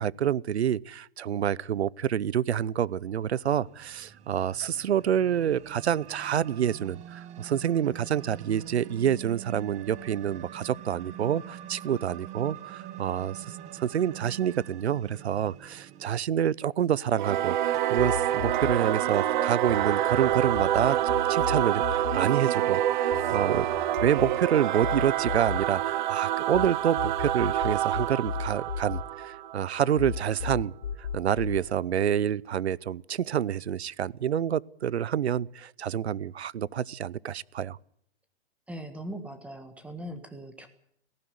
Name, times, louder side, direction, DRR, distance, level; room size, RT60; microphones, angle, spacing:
voice 1, 0.0-30.7 31.0-37.8, right 9 dB, 85° right, 0.7 m, -28 dB
sound 1, 3.1-16.2, right 12 dB, 20° right, 1.3 m, -45 dB
Singing / Musical instrument, 17.1-30.0, right 12 dB, 45° right, 0.9 m, -27 dB
sound 2, 18.0-19.8 20.1-26.7 27.0-29.7 30.0-31.6, left 6 dB, 70° left, 3.3 m, -35 dB
voice 2, 38.7-40.7, right 1 dB, 5° right, 1.6 m, -40 dB
18.0 x 15.5 x 9.5 m
hypercardioid pair, 145°, 32 cm